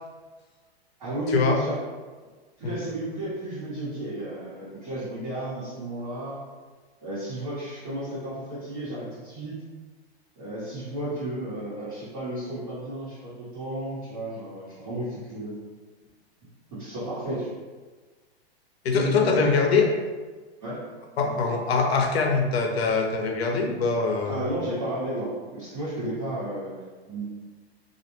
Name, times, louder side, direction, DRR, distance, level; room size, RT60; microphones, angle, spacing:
voice 1, 1.0-1.8 2.6-6.4 7.0-9.6 10.4-15.5 16.7-17.5 18.9-19.5 20.6-20.8 21.2-21.3 24.3-27.2, right 1 dB, 35° right, -14 dB, 1.1 m, -33 dB
voice 2, 18.8-19.9 21.2-24.4, left 4 dB, 70° left, 2 dB, 0.6 m, -23 dB
2.3 x 2.1 x 3.0 m, 1.4 s
hypercardioid pair, 180°, 32 cm